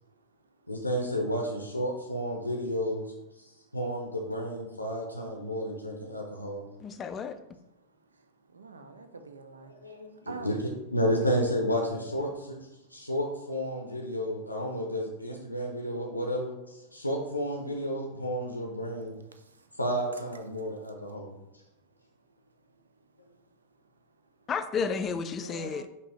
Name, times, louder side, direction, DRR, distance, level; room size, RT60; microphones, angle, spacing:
voice 1, 0.7-3.1 3.7-6.7 9.7-12.5 12.9-16.5 16.9-19.1 19.8-21.3, equal, 85° left, 1 dB, 0.5 m, -31 dB
voice 2, 6.8-7.4 24.5-25.9, left 5 dB, 25° left, 10 dB, 0.3 m, -32 dB
voice 3, 8.5-9.7 10.3-10.6 11.2-11.3 25.4-25.9, right 4 dB, 75° right, 8 dB, 0.4 m, -44 dB
5.3 x 2.7 x 3.0 m, 0.92 s
figure-of-eight pair, 90°, 0 cm